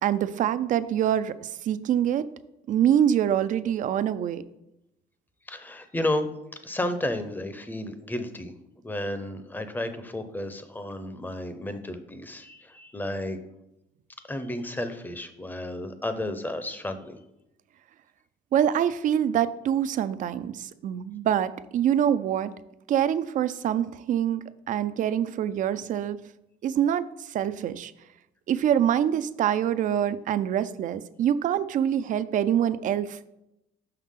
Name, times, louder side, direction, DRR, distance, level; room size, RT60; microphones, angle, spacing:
voice 1, 0.0-2.3 2.7-4.4 18.5-22.5 22.9-26.2 26.6-27.9 28.5-33.3, right 10 dB, 50° right, 14 dB, 0.4 m, -25 dB
voice 2, 5.5-6.3 6.6-8.5 8.8-13.4 14.2-17.2, left 1 dB, 10° left, 10 dB, 0.6 m, -32 dB
5.7 x 5.7 x 3.6 m, 0.87 s
cardioid pair, 110°, 17 cm